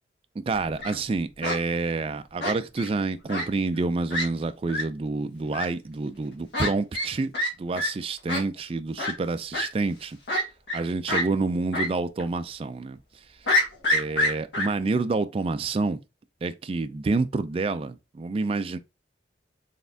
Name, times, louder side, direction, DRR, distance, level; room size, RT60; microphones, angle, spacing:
voice 1, 0.4-7.3 7.6-10.2 10.7-13.0 13.9-16.0 16.4-18.8, right 3 dB, 30° right, 0.3 m, -28 dB
Fowl, 0.5-0.9 1.4-1.6 2.4-2.9 3.3-3.5 3.8-3.9 4.1-4.2 4.7-4.8 5.5-5.6 6.5-6.7 6.9-7.1 7.3-7.5 7.8-7.9 8.3-8.4 9.0-9.1 9.5-9.7 10.3-10.8 11.1-11.2 11.7-11.9 12.2-12.3 13.5-14.7, left 1 dB, 70° left, 1.4 m, -25 dB
4.1 x 3.5 x 2.6 m
head